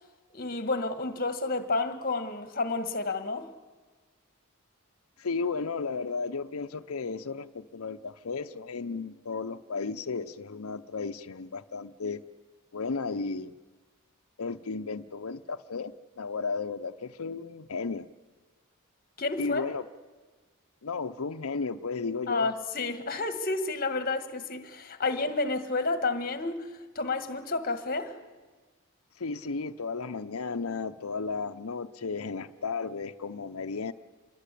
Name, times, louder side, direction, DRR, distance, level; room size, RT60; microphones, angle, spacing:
voice 1, 0.3-3.5 19.2-19.7 22.3-28.2, left 3 dB, 40° left, 1.8 m, -30 dB
voice 2, 5.2-12.2 12.7-13.5 14.4-18.1 19.4-19.9 20.8-22.5 29.2-33.9, left 4 dB, 85° left, 0.7 m, -34 dB
26.5 x 21.5 x 8.5 m
head